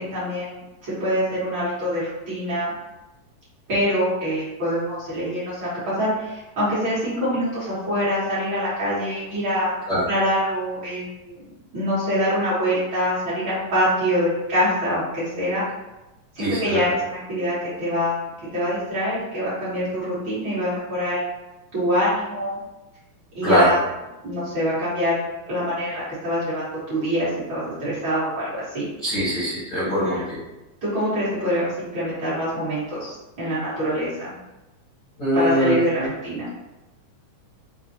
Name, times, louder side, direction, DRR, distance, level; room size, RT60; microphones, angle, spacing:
voice 1, 0.0-2.7 3.7-11.4 11.7-15.6 16.3-21.2 21.7-22.6 23.3-23.8 24.2-25.2 25.5-28.9 29.8-30.2 30.8-34.3 35.3-36.5, equal, 50° right, -11 dB, 1.4 m, -25 dB
voice 2, 16.4-16.8 23.4-23.7 29.0-30.4 35.2-36.0, equal, 60° left, -12 dB, 1.0 m, -22 dB
5.4 x 2.1 x 2.8 m, 1.0 s
omnidirectional pair, 3.8 m